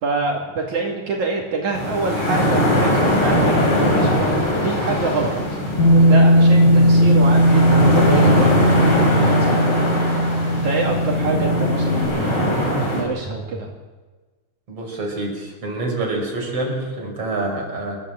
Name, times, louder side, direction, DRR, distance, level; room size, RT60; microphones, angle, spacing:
voice 1, 0.0-4.1 4.5-5.3 5.9-9.9 10.4-12.5 12.7-13.7, right 3 dB, 65° right, -1 dB, 3.8 m, -26 dB
sound 1, 1.7-13.0, left 1 dB, 40° left, 5.6 m, -21 dB
Bass guitar, 5.8-12.0, equal, 80° left, 9.0 m, -16 dB
voice 2, 14.7-18.0, right 2 dB, 45° right, -1 dB, 6.8 m, -27 dB
28.0 x 14.5 x 7.8 m, 1.3 s
omnidirectional pair, 3.8 m